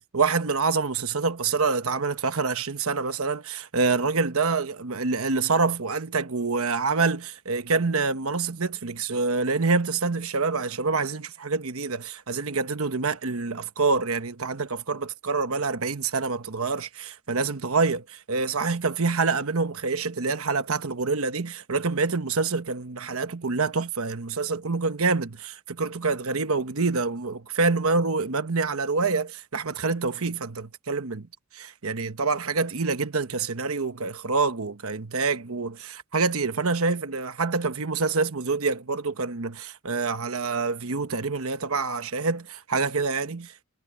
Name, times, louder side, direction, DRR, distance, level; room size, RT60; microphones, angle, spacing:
voice 1, 0.1-31.3 31.5-43.6, right 4 dB, 70° right, 1.1 m, -26 dB
head